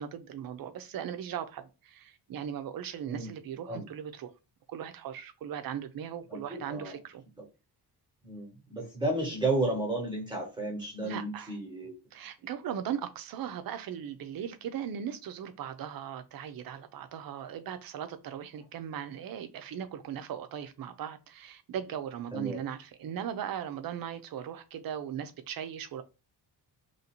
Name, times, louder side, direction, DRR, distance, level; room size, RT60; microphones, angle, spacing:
voice 1, 0.0-4.3 4.7-7.2 11.0-11.6 12.1-26.0, right 9 dB, 55° right, 0.6 m, -38 dB
voice 2, 6.3-7.0 8.2-11.9 22.3-22.6, right 2 dB, 10° right, 1.1 m, -32 dB
3.1 x 2.7 x 4.3 m
cardioid pair, 175°, 42 cm